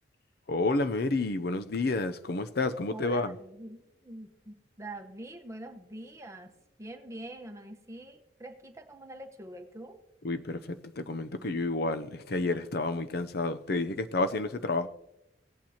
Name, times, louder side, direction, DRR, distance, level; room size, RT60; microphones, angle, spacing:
voice 1, 0.5-3.3 10.2-14.9, left 2 dB, 55° left, 0.6 m, -30 dB
voice 2, 2.9-6.5 6.8-10.0, right 1 dB, 15° right, 1.0 m, -44 dB
18.5 x 8.9 x 2.9 m
head